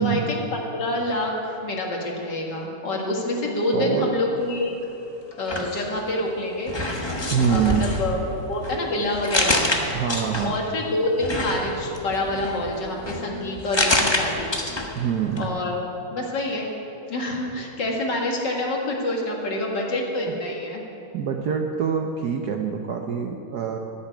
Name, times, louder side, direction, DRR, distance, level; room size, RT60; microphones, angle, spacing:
voice 1, 0.0-4.7 5.4-6.7 7.5-8.2 8.5-10.0 10.4-14.5 15.0-15.1 15.4-16.7 17.1-20.8, left 1 dB, 55° left, -1 dB, 2.4 m, -27 dB
voice 2, 3.7-4.1 5.6-5.9 7.3-7.9 9.9-10.6 14.9-15.5 21.1-23.8, right 7 dB, 65° right, 3 dB, 1.1 m, -25 dB
sound 1, 5.3-6.3 6.7-10.7 11.2-15.1 15.3-15.5, left 1 dB, 20° left, 0.7 m, -27 dB
13.0 x 7.2 x 9.7 m, 2.9 s
omnidirectional pair, 2.3 m